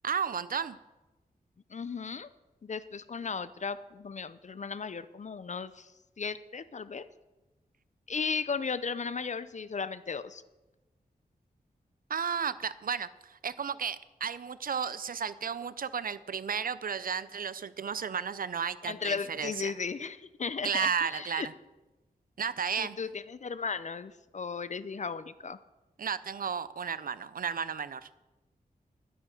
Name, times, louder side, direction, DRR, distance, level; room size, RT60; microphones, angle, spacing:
voice 1, 0.0-0.8 12.1-19.7 20.6-21.5 22.4-23.0 26.0-28.1, right 7 dB, 65° right, 16 dB, 0.6 m, -33 dB
voice 2, 1.7-2.3 2.6-7.1 8.1-10.4 18.8-21.5 22.8-25.6, left 5 dB, 50° left, 15 dB, 0.6 m, -36 dB
11.5 x 10.0 x 6.5 m, 1.1 s
wide cardioid pair, 90°, 16 cm